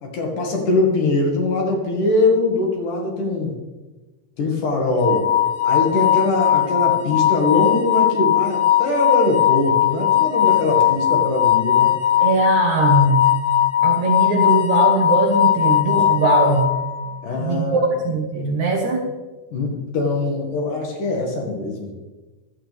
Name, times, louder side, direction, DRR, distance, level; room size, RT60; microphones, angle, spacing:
voice 1, 0.0-3.6 4.4-5.3 5.6-11.9 17.2-17.9 19.5-21.9, left 2 dB, 60° left, 0 dB, 3.2 m, -22 dB
sound 1, 5.0-17.2, left 11 dB, 90° left, 1.5 m, -18 dB
voice 2, 12.2-13.2 13.8-16.7 17.4-19.0, right 3 dB, 60° right, 0 dB, 2.2 m, -20 dB
15.0 x 13.0 x 3.5 m, 1.2 s
omnidirectional pair, 4.6 m